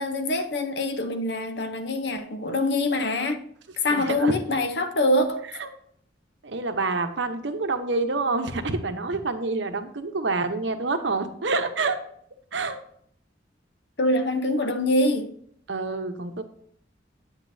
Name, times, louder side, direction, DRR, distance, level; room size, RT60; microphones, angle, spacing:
voice 1, 0.0-3.4 3.8-5.4 14.0-15.3, left 1 dB, 60° left, 0.8 m, -24 dB
voice 2, 3.9-4.4 5.6-5.7 6.4-12.0 12.5-12.8 15.7-16.4, right 3 dB, 75° right, 0.9 m, -27 dB
8.8 x 8.2 x 2.7 m
head